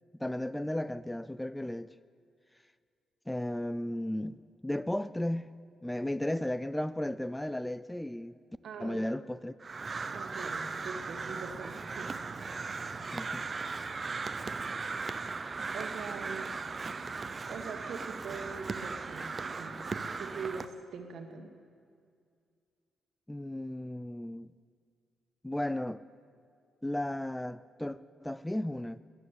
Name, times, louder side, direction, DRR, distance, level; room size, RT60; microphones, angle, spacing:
voice 1, 0.2-1.9 3.3-4.4 4.6-5.5 5.8-8.4 8.8-9.5 13.0-13.5 23.3-24.5 25.4-26.0 26.8-29.0, left 1 dB, 5° left, 0.3 m, -34 dB
voice 2, 8.6-9.0 10.1-12.1 15.7-16.5 17.5-19.8 20.2-21.5, right 5 dB, 65° right, 1.7 m, -42 dB
Crow, 9.6-20.7, right 4 dB, 35° right, 0.6 m, -37 dB
13.0 x 11.0 x 8.9 m
cardioid pair, 90°, 0 cm